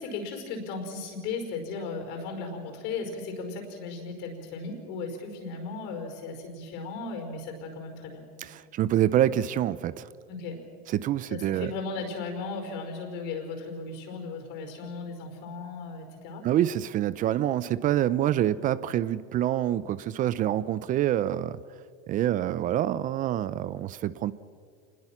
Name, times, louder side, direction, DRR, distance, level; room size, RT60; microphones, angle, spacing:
voice 1, 0.0-8.2 10.3-10.6 11.3-16.5, left 4 dB, 65° left, 5 dB, 5.2 m, -36 dB
voice 2, 8.4-10.1 10.9-11.7 16.4-21.6 22.1-24.3, right 12 dB, 40° right, 18 dB, 0.6 m, -26 dB
26.5 x 21.0 x 6.1 m, 2.1 s
supercardioid pair, 115°, 20 cm